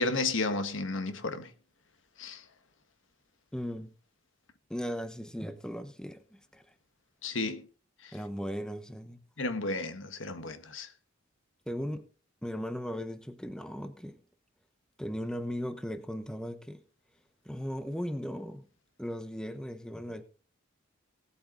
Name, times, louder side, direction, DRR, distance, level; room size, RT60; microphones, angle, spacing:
voice 1, 0.0-1.5 2.2-2.4 7.2-7.7 8.0-8.1 9.4-10.9, left 3 dB, 70° left, 1.4 m, -32 dB
voice 2, 3.5-3.9 4.7-6.6 8.1-9.2 11.7-12.1 12.4-14.2 15.0-16.8 17.4-18.7 19.0-20.2, equal, 5° left, 0.9 m, -37 dB
17.5 x 8.3 x 3.8 m
head